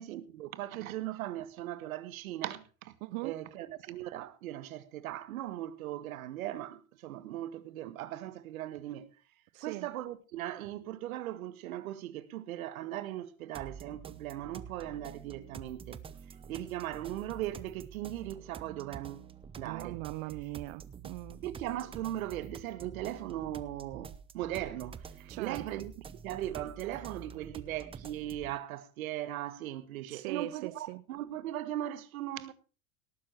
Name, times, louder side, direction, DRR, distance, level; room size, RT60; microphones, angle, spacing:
voice 1, 0.0-2.9 3.2-9.1 9.6-16.0 16.5-19.3 19.6-20.0 21.4-25.9 26.2-32.5, right 13 dB, 85° right, 1.6 m, -38 dB
voice 2, 3.0-3.4 9.5-9.9 19.6-21.4 25.3-25.6 30.1-31.0, right 21 dB, 55° right, 0.6 m, -40 dB
sound 1, 13.5-28.5, right 6 dB, 15° right, 0.6 m, -48 dB
18.0 x 9.5 x 4.5 m
supercardioid pair, 135°, 41 cm